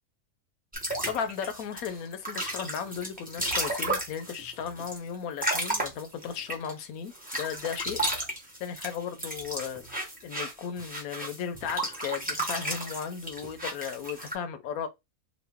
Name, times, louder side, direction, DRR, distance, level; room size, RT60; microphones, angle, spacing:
sound 1, 0.7-6.7 7.1-14.4, right 1 dB, 10° right, 0.7 m, -33 dB
voice 1, 1.1-8.0 8.6-14.9, left 7 dB, 75° left, 1.1 m, -35 dB
3.0 x 2.4 x 3.4 m
omnidirectional pair, 1.6 m